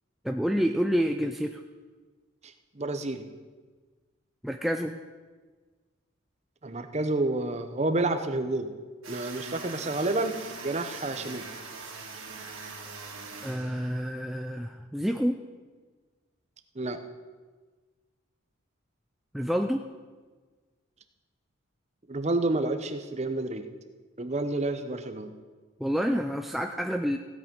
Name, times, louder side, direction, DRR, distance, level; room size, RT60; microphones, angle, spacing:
voice 1, 0.2-1.6 4.4-4.9 13.4-15.4 19.3-19.8 25.8-27.2, equal, ahead, 4 dB, 0.4 m, -28 dB
voice 2, 2.4-3.3 6.6-8.7 9.1-11.5 16.8-17.0 22.1-23.7 24.2-25.3, right 2 dB, 30° right, 8 dB, 0.8 m, -29 dB
sound 1, 9.0-14.2, right 4 dB, 85° right, 2.7 m, -42 dB
16.0 x 8.7 x 5.2 m, 1.4 s
head